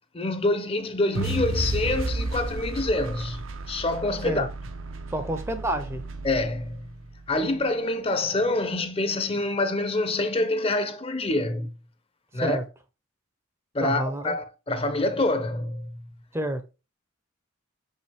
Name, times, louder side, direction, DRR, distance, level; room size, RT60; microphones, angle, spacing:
voice 1, 0.1-4.5 6.2-6.9 7.3-11.7 12.3-12.6 13.7-16.0, left 2 dB, 25° left, 0.7 m, -26 dB
sound 1, 1.1-7.3, right 2 dB, 70° right, 0.9 m, -32 dB
voice 2, 5.1-6.0 12.4-12.6 13.8-14.3 16.3-16.7, right 1 dB, 15° right, 0.7 m, -29 dB
6.0 x 5.4 x 3.5 m
head